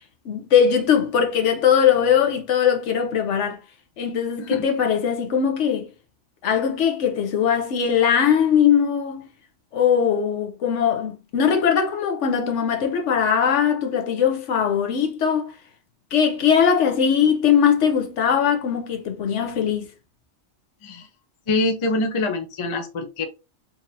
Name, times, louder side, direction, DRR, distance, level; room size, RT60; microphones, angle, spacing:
voice 1, 0.2-3.6 4.0-5.9 6.4-9.2 9.7-15.5 16.1-19.9, left 8 dB, 75° left, 1.1 m, -20 dB
voice 2, 21.5-23.2, left 2 dB, 35° left, 0.5 m, -24 dB
3.8 x 2.8 x 2.6 m
omnidirectional pair, 1.3 m